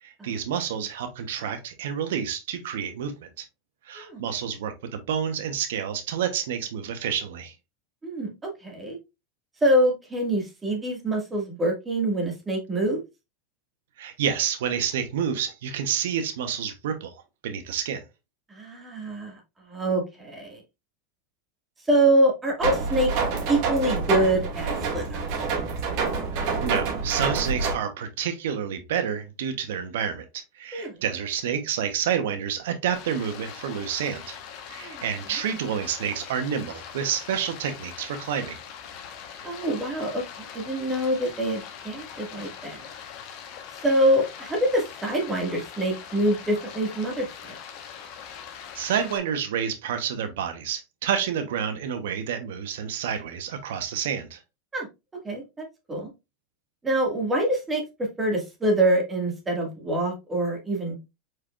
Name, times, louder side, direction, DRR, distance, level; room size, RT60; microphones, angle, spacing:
voice 1, 0.0-3.1 3.4-3.5 3.8-7.5 14.0-18.0 26.3-34.4 34.7-38.6 48.7-54.4, right 8 dB, 80° right, 0.9 m, -29 dB
voice 2, 8.0-9.0 9.6-13.0 18.5-19.4 19.7-20.6 21.9-23.1 23.5-25.3 30.7-30.9 34.8-35.0 39.4-42.9 43.8-47.6 54.7-54.9 55.1-56.1 56.8-61.0, right 1 dB, 15° right, 1.8 m, -25 dB
sound 1, 22.6-27.7, right 4 dB, 55° right, 2.1 m, -27 dB
Stream, 32.9-49.2, left 8 dB, 55° left, 1.1 m, -42 dB
4.8 x 4.4 x 2.4 m
supercardioid pair, 115°, 0 cm